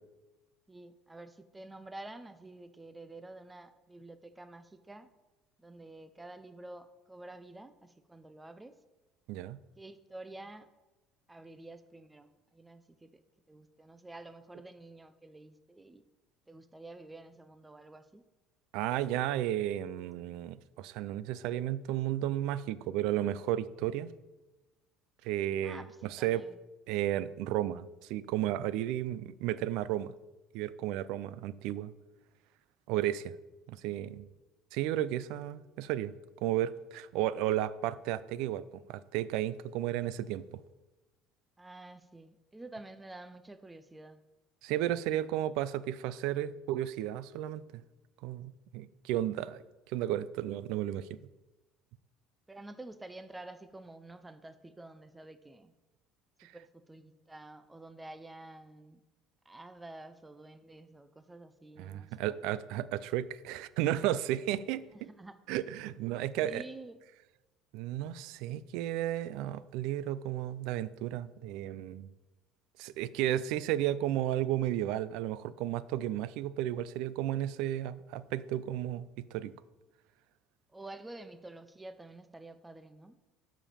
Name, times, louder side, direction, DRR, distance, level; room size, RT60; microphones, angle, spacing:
voice 1, 0.7-5.1 5.6-8.7 9.8-10.7 11.3-13.1 13.5-16.0 16.5-18.2 25.6-26.6 41.6-44.2 52.5-55.7 56.5-59.0 59.5-62.4 64.9-65.4 66.4-67.0 80.7-83.2, right 2 dB, 10° right, 10 dB, 0.5 m, -49 dB
voice 2, 18.7-24.1 25.2-26.4 26.9-30.1 30.5-31.9 32.9-33.3 33.7-34.3 34.7-36.1 36.4-40.4 44.6-47.8 48.2-49.6 49.9-51.2 56.4-56.5 61.8-64.8 65.5-66.6 67.7-72.1 72.8-79.5, right 12 dB, 70° right, 17 dB, 0.4 m, -33 dB
12.0 x 5.1 x 5.7 m, 1.1 s
cardioid pair, 145°, 0 cm